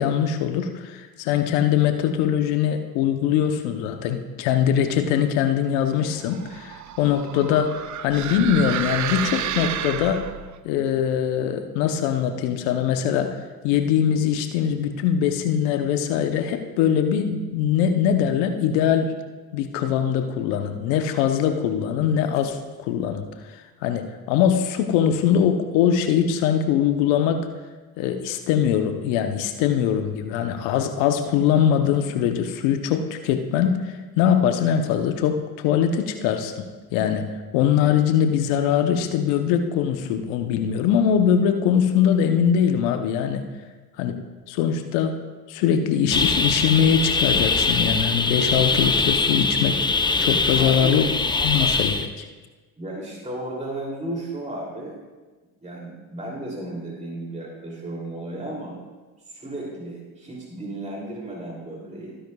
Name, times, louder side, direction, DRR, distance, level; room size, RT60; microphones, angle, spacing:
voice 1, 0.0-10.2 10.6-19.1 19.5-23.3 23.5-27.5 28.0-36.6 36.9-37.2 37.5-43.4 44.0-45.2 45.5-49.9 50.2-51.1 51.4-52.3, left 8 dB, 80° left, 6 dB, 0.9 m, -22 dB
sound 1, 6.1-10.6, right 10 dB, 45° right, 0.6 m, -31 dB
sound 2, 46.1-52.1, left 4 dB, 10° left, 0.6 m, -22 dB
voice 2, 50.5-51.0 52.8-55.0 55.6-58.8 59.2-62.2, right 1 dB, 15° right, -3 dB, 2.9 m, -34 dB
14.5 x 10.0 x 2.3 m, 1.3 s
supercardioid pair, 70°, 44 cm